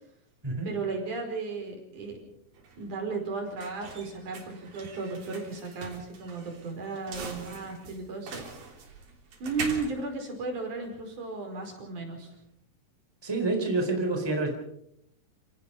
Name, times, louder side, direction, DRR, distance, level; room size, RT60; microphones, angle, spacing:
voice 1, 0.6-2.2 2.8-8.7 9.4-12.3, right 3 dB, 60° right, 2 dB, 6.4 m, -35 dB
sound 1, 2.1-11.1, right 4 dB, 85° right, 5.4 m, -43 dB
voice 2, 13.2-14.6, right 2 dB, 5° right, 3 dB, 3.7 m, -28 dB
29.0 x 18.0 x 5.5 m, 0.76 s
omnidirectional pair, 4.1 m